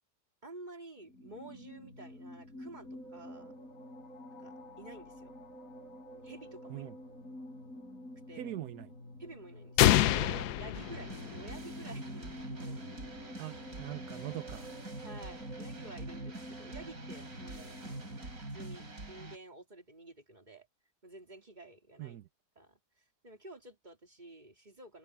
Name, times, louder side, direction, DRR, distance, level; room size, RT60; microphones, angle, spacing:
voice 1, 0.4-3.5 4.4-5.3 6.2-6.9 8.3-8.5 9.2-12.3 12.6-12.9 15.0-20.7 21.0-22.2 22.5-25.0, right 2 dB, 25° right, 3.5 m, -51 dB
sound 1, 1.0-18.4, left 1 dB, 60° left, 5.9 m, -49 dB
voice 2, 8.4-8.9 10.1-10.5 13.4-14.8 22.0-22.3, right 14 dB, 80° right, 1.3 m, -42 dB
sound 2, 9.8-11.7, left 14 dB, 80° left, 1.2 m, -26 dB
sound 3, 10.7-19.4, right 2 dB, 65° right, 5.0 m, -45 dB
omnidirectional pair, 1.7 m